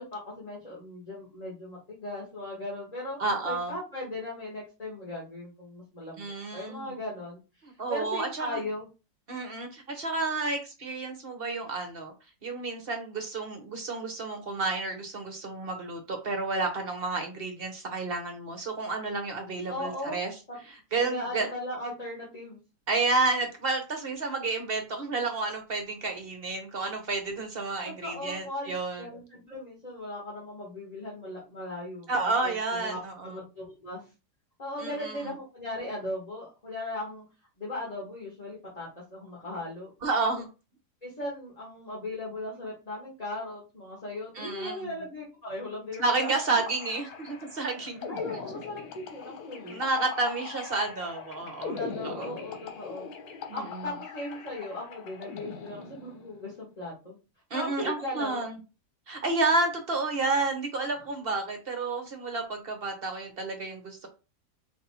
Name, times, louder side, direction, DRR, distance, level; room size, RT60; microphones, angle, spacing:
voice 1, 0.0-3.2 3.4-6.3 6.5-7.4 7.9-8.8 19.7-20.2 20.5-20.6 21.0-22.6 27.8-34.0 34.6-37.3 37.6-39.9 41.0-46.3 48.1-49.8 51.7-53.1 53.5-57.2 57.5-58.4, left 1 dB, 25° left, -5 dB, 1.3 m, -38 dB
voice 2, 3.2-3.7 6.2-6.9 7.6-8.6 9.3-12.1 12.4-20.3 20.9-21.5 22.9-29.1 32.1-33.4 34.8-35.2 40.0-40.5 44.3-44.8 46.0-48.1 48.8-48.9 49.7-51.8 52.0-52.3 53.5-53.9 57.5-58.6 59.1-64.1, right 3 dB, 50° right, 4 dB, 0.7 m, -30 dB
sound 1, 45.9-56.4, left 5 dB, 70° left, 1.4 m, -41 dB
4.1 x 2.7 x 4.0 m, 0.31 s
omnidirectional pair, 1.8 m